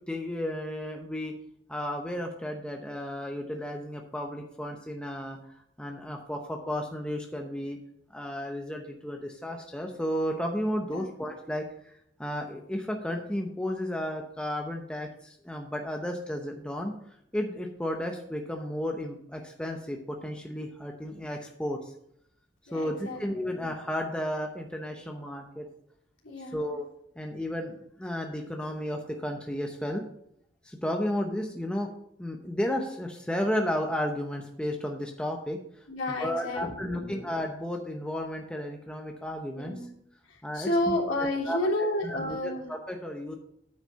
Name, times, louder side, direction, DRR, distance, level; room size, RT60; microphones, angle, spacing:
voice 1, 0.1-1.3 1.7-5.4 5.8-7.8 8.1-11.9 12.2-21.9 22.7-25.7 26.5-26.9 27.2-30.0 30.6-31.9 32.2-35.6 36.1-39.8 40.4-40.7 41.5-41.7 42.0-43.4, equal, 5° left, 2 dB, 0.8 m, -33 dB
voice 2, 22.7-23.5 26.2-26.7 35.9-37.2 39.5-39.9 40.3-42.7, left 1 dB, 90° left, -4 dB, 3.2 m, -31 dB
9.1 x 5.6 x 5.7 m, 0.71 s
head